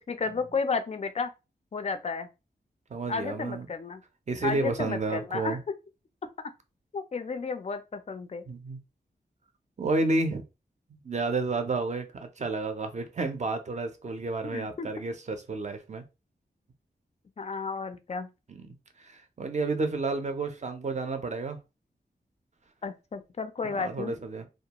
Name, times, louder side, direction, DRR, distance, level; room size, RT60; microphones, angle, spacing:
voice 1, 0.1-1.3 1.7-2.3 3.1-4.0 4.4-5.6 6.4-6.5 6.9-8.4 14.5-14.9 17.4-18.3 22.8-24.1, left 4 dB, 40° left, 0.3 m, -32 dB
voice 2, 2.9-3.7 4.3-5.6 8.5-8.8 9.8-10.4 10.9-16.0 18.5-18.7 19.0-21.6 23.7-24.5, right 3 dB, 40° right, 0.5 m, -31 dB
2.3 x 2.2 x 2.8 m
wide cardioid pair, 100°, 18 cm